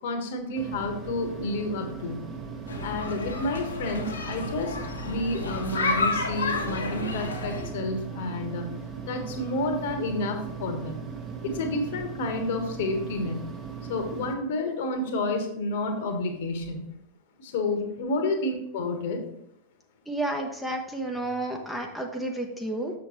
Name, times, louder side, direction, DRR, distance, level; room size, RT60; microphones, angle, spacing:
voice 1, 0.0-2.2 2.8-4.8 5.0-8.7 9.0-11.0 11.4-13.4 13.9-16.9 17.4-19.2, left 2 dB, 55° left, 5 dB, 1.2 m, -30 dB
sound 1, 0.6-14.3, right 6 dB, 25° right, 1.1 m, -38 dB
sound 2, 2.7-7.7, left 3 dB, 70° left, 1.1 m, -31 dB
voice 2, 20.1-22.9, right 1 dB, ahead, 1 dB, 0.8 m, -31 dB
6.8 x 6.4 x 3.0 m, 0.77 s
figure-of-eight pair, 90°, 0 cm